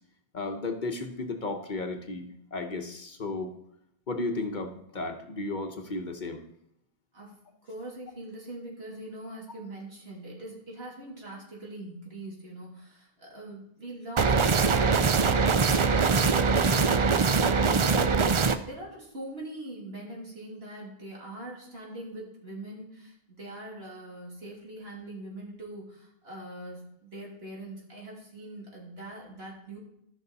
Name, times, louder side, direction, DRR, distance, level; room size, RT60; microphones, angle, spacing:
voice 1, 0.3-3.5 4.1-6.4, left 3 dB, 50° left, 5 dB, 1.0 m, -34 dB
voice 2, 7.6-15.3 18.7-29.8, right 1 dB, 75° right, -3 dB, 3.1 m, -42 dB
sound 1, 14.2-18.6, right 5 dB, 45° right, 0.4 m, -22 dB
13.5 x 6.0 x 4.1 m, 0.76 s
omnidirectional pair, 1.1 m